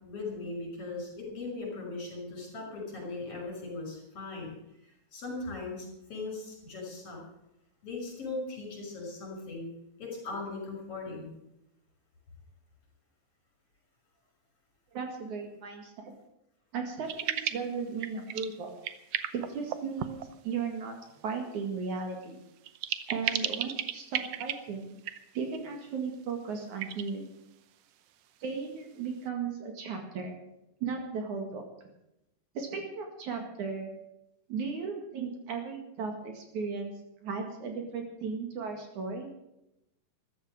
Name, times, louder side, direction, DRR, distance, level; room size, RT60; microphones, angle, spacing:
voice 1, 0.0-4.5 5.1-7.2 7.8-9.7 10.0-11.3, left 3 dB, 40° left, -1 dB, 6.8 m, -39 dB
voice 2, 14.9-16.1 16.7-18.7 19.3-20.9 21.2-22.4 23.1-25.0 25.3-27.3 28.4-30.4 30.8-31.6 32.5-33.9 34.5-36.9 37.2-39.3, right 5 dB, 60° right, 3 dB, 3.3 m, -36 dB
sound 1, 17.0-17.7 18.0-18.5 18.8-20.3 22.6-24.6 25.0-25.6 26.8-27.1, right 11 dB, 90° right, 1.3 m, -34 dB
14.0 x 13.0 x 6.5 m, 0.86 s
omnidirectional pair, 4.0 m